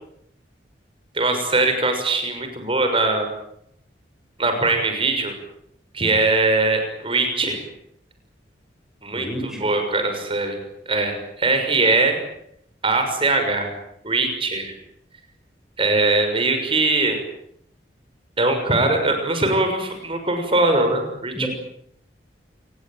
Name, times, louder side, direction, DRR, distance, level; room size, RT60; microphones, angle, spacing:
voice 1, 1.1-3.3 4.4-5.3 5.9-7.6 9.0-10.6 10.9-12.2 12.8-13.7 14.0-14.7 15.8-17.2 18.4-21.5, right 2 dB, 30° right, 6 dB, 6.4 m, -21 dB
voice 2, 9.1-9.8 21.3-21.5, equal, 5° right, 1 dB, 5.6 m, -30 dB
28.5 x 20.5 x 9.1 m, 0.73 s
head